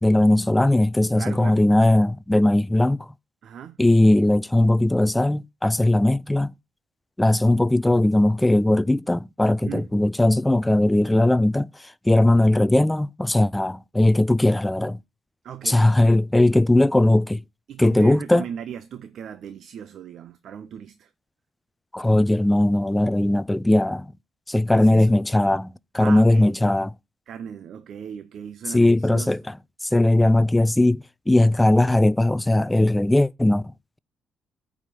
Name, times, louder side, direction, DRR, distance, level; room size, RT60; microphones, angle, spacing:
voice 1, 0.0-3.1 3.8-6.5 7.2-11.7 12.0-15.0 15.6-17.4 17.8-18.4 21.9-24.1 24.5-26.9 28.7-29.5 29.9-33.6, left 1 dB, 10° left, 0.4 m, -19 dB
voice 2, 1.1-1.6 3.4-3.8 9.6-9.8 15.4-15.9 17.7-21.1 24.7-25.2 26.0-26.5 27.3-29.4, right 8 dB, 65° right, 0.6 m, -37 dB
9.0 x 5.0 x 5.6 m
cardioid pair, 90°, 0 cm